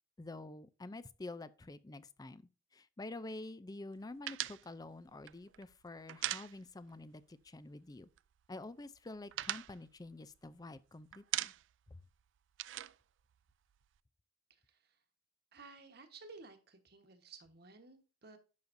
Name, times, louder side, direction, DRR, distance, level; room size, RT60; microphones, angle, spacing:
voice 1, 0.2-8.1 8.5-11.5 11.9-12.0, left 2 dB, 20° left, 0.4 m, -48 dB
sound 1, 4.3-7.0 7.3-7.5 7.8-8.5 8.8-10.8 11.1-11.9 12.1-14.0, right 14 dB, 80° right, 0.3 m, -41 dB
voice 2, 14.5-15.0 15.5-18.4, right 4 dB, 60° right, 1.3 m, -56 dB
10.5 x 6.7 x 2.6 m
head